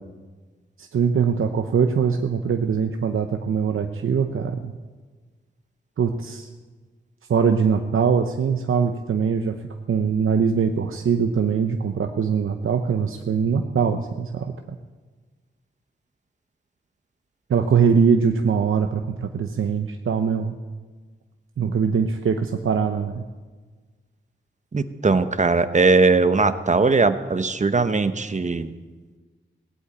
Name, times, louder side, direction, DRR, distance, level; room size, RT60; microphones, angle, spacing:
voice 1, 0.8-4.7 6.0-6.5 7.3-9.6 9.9-14.5 17.5-20.6 21.6-23.2, right 6 dB, 90° right, 5 dB, 0.8 m, -22 dB
voice 2, 24.7-28.7, right 3 dB, 35° right, 11 dB, 0.9 m, -19 dB
18.0 x 8.4 x 8.9 m, 1.4 s
wide cardioid pair, 95°, 20 cm